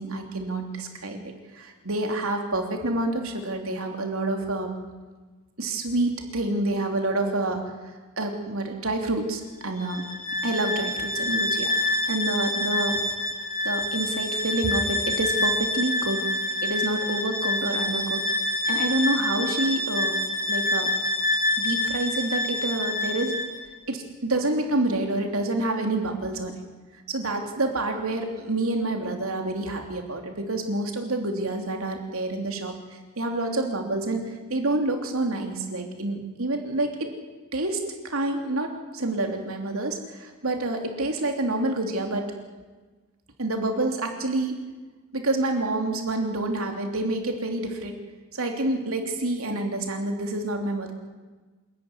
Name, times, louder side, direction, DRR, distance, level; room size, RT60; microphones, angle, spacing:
voice 1, 0.0-4.8 5.6-7.7 8.2-10.0 10.4-13.0 13.6-16.3 16.6-18.2 18.7-20.2 20.5-20.9 21.6-23.3 23.9-26.5 27.1-32.8 33.2-37.1 37.5-42.4 43.4-44.6 45.1-48.0 48.3-50.9, right 2 dB, 85° right, 3 dB, 3.2 m, -28 dB
Bowed string instrument, 9.8-23.6, left 2 dB, 40° left, 3.4 m, -27 dB
26.5 x 13.5 x 9.8 m, 1.3 s
head